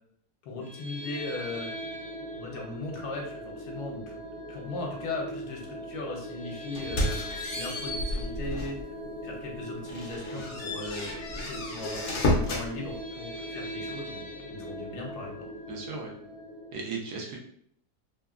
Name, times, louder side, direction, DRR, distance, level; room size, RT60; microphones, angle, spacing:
voice 1, 0.4-1.7 2.3-4.2 4.5-7.2 7.5-8.8 9.2-15.5, left 2 dB, 75° left, 0 dB, 1.2 m, -38 dB
sound 1, 0.6-16.7, equal, 55° right, 1.1 m, -40 dB
sound 2, 6.7-8.8 9.3-9.4 9.9-12.7, left 1 dB, 60° left, 0.8 m, -31 dB
voice 2, 15.7-16.1 16.7-17.4, right 4 dB, 75° right, 0 dB, 1.2 m, -36 dB
3.3 x 2.1 x 2.3 m, 0.65 s
omnidirectional pair, 1.8 m